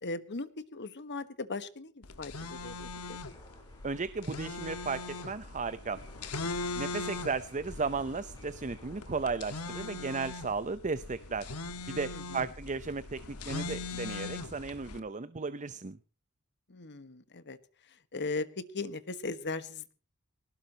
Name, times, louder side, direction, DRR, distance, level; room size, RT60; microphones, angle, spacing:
voice 1, 0.0-3.2 12.1-12.4 16.7-17.6 18.1-19.9, left 3 dB, 55° left, 13 dB, 1.4 m, -38 dB
sound 1, 2.0-15.0, left 3 dB, 85° left, 1.6 m, -40 dB
sound 2, 3.3-10.3, left 1 dB, 20° left, 5.1 m, -58 dB
voice 2, 3.8-6.0 6.8-11.5 11.9-16.0, right 4 dB, 35° right, 13 dB, 0.7 m, -35 dB
20.5 x 18.5 x 2.9 m, 0.38 s
head